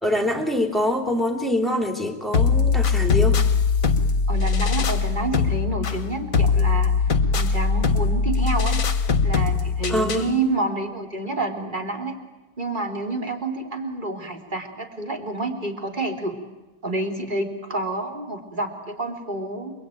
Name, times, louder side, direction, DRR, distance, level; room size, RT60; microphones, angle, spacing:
voice 1, 0.0-3.4 9.9-10.3, left 1 dB, ahead, 4 dB, 3.0 m, -24 dB
sound 1, 2.3-10.3, left 5 dB, 50° left, 1.7 m, -21 dB
voice 2, 4.3-6.9 7.3-8.8 9.2-12.2 12.6-16.4 16.8-19.7, right 2 dB, 25° right, 3 dB, 3.4 m, -28 dB
29.0 x 22.5 x 9.2 m, 1.1 s
omnidirectional pair, 2.0 m